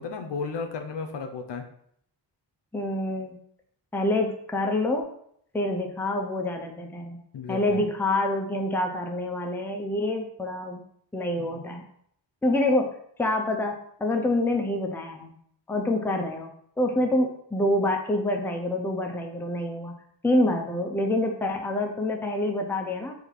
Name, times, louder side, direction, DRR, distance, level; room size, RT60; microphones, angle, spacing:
voice 1, 0.0-1.7 7.3-7.8 11.4-11.6, left 5 dB, 60° left, 5 dB, 0.7 m, -34 dB
voice 2, 2.7-3.4 3.9-5.1 5.5-7.2 7.5-10.8 11.1-11.8 12.4-12.9 13.2-13.7 14.0-15.3 15.7-16.5 16.8-19.9 20.2-23.1, left 1 dB, 5° left, 2 dB, 0.5 m, -26 dB
4.4 x 2.9 x 4.0 m, 0.68 s
cardioid pair, 85°, 46 cm